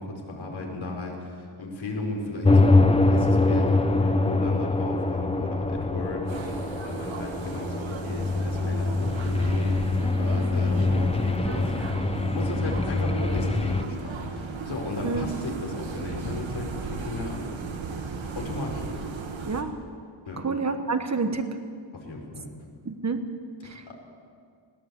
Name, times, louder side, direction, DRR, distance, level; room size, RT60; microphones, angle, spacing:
voice 1, 0.0-6.5 6.8-17.4 18.3-18.9 20.2-20.4 21.9-22.5 23.9-24.0, left 2 dB, 75° left, 0 dB, 5.0 m, -35 dB
sound 1, 2.4-13.8, left 2 dB, 15° left, 0.8 m, -24 dB
sound 2, 6.3-19.6, right 4 dB, 75° right, 2.1 m, -36 dB
voice 2, 20.4-21.5 22.8-23.2 23.6-23.9, right 4 dB, 35° right, 7 dB, 1.3 m, -28 dB
21.0 x 17.5 x 8.3 m, 2.1 s
wide cardioid pair, 155°, 47 cm